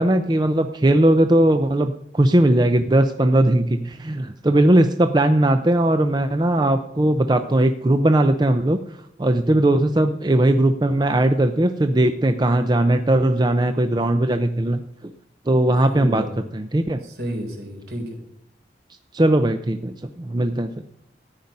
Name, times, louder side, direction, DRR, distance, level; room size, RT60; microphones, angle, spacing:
voice 1, 0.0-8.8 9.2-15.1 15.5-16.2 16.5-17.0 19.1-20.8, right 1 dB, 25° right, 8 dB, 0.5 m, -19 dB
voice 2, 15.7-16.4 17.0-18.2, equal, 65° right, 3 dB, 3.8 m, -31 dB
14.5 x 9.5 x 5.4 m, 0.76 s
head